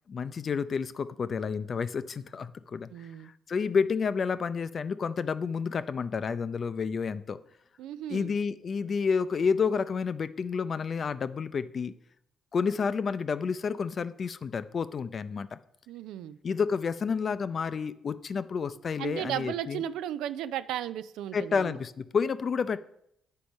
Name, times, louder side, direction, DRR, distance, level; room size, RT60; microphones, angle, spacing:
voice 1, 0.1-7.4 8.1-11.9 12.5-15.6 16.4-19.8 21.3-22.8, left 5 dB, 45° left, 14 dB, 0.4 m, -30 dB
voice 2, 2.9-3.3 7.8-8.3 15.9-16.4 19.0-21.8, right 11 dB, 90° right, 14 dB, 0.4 m, -35 dB
8.7 x 4.6 x 5.3 m, 0.75 s
cardioid pair, 90°, 0 cm